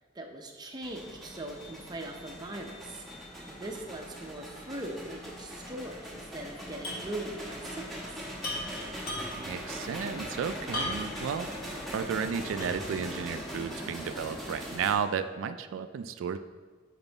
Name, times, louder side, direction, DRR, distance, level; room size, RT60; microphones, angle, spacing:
voice 1, 0.1-3.0 3.5-8.3, right 1 dB, 20° right, 2 dB, 0.6 m, -40 dB
sound 1, 0.8-14.9, equal, ahead, 1.1 m, -41 dB
sound 2, 6.8-7.1 7.4-7.5 8.4-9.5 10.7-11.2 11.7-11.8 12.6-13.0, left 1 dB, 55° left, 1.5 m, -36 dB
voice 2, 9.4-11.5 11.9-16.4, right 7 dB, 85° right, 10 dB, 0.3 m, -33 dB
5.3 x 5.0 x 4.0 m, 1.4 s
head